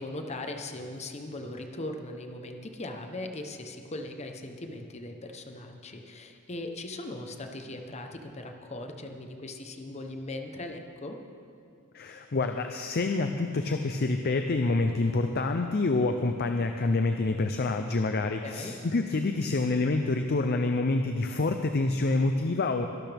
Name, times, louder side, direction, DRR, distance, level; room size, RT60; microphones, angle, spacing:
voice 1, 0.0-11.2 18.4-18.7, left 2 dB, 30° left, 5 dB, 0.9 m, -39 dB
voice 2, 11.9-22.9, left 3 dB, 45° left, 6 dB, 0.5 m, -27 dB
22.5 x 12.0 x 3.5 m, 2.5 s
head